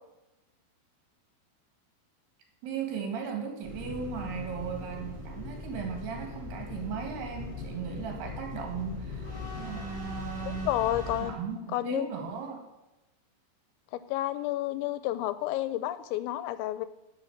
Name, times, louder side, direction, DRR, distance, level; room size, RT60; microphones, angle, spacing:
voice 1, 2.6-10.7 11.2-12.6, right 6 dB, 65° right, 3 dB, 3.7 m, -37 dB
sound 1, 3.6-11.3, left 3 dB, 5° right, 3.9 m, -40 dB
voice 2, 10.5-11.4 11.7-12.1 13.9-16.9, left 14 dB, 90° left, 13 dB, 3.0 m, -30 dB
11.5 x 6.4 x 8.5 m, 0.99 s
omnidirectional pair, 5.2 m